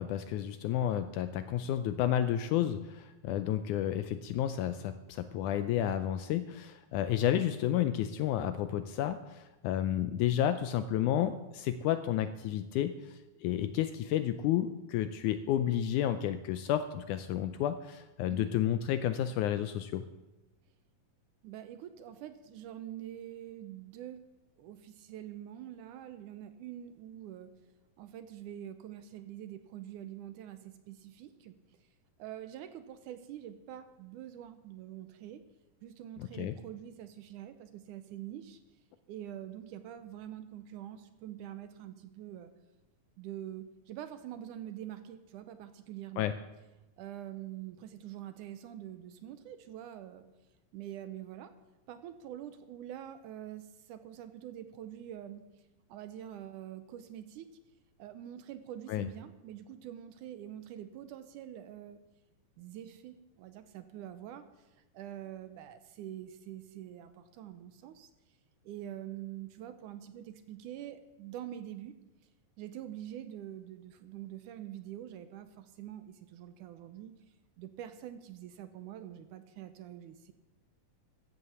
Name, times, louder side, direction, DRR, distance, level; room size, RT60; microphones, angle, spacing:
voice 1, 0.0-20.0 36.2-36.5 46.2-46.3 58.9-59.1, left 11 dB, 80° left, 11 dB, 1.8 m, -31 dB
voice 2, 21.4-24.2 24.6-27.5 28.0-31.6 32.2-35.4 35.8-38.6 39.1-42.5 43.2-46.3 47.0-50.2 50.7-51.5 51.9-55.5 55.9-57.5 58.0-62.0 62.6-64.7 64.9-68.1 68.6-72.0 72.6-77.1 77.6-80.3, right 11 dB, 80° right, 10 dB, 2.0 m, -45 dB
14.5 x 8.3 x 7.0 m, 1.0 s
omnidirectional pair, 4.0 m